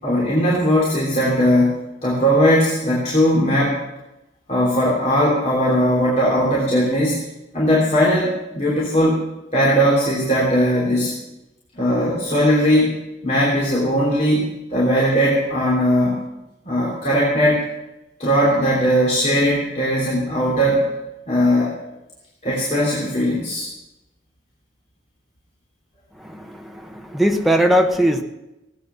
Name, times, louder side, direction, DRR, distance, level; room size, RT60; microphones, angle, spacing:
voice 1, 0.0-1.7 2.0-3.8 4.5-7.2 7.5-9.2 9.5-11.1 11.7-16.1 16.6-17.7 18.2-20.9 21.3-21.7 22.4-23.7, equal, 35° left, -6 dB, 3.2 m, -18 dB
voice 2, 26.2-28.2, equal, ahead, 3 dB, 1.1 m, -19 dB
17.0 x 9.0 x 6.8 m, 0.96 s
head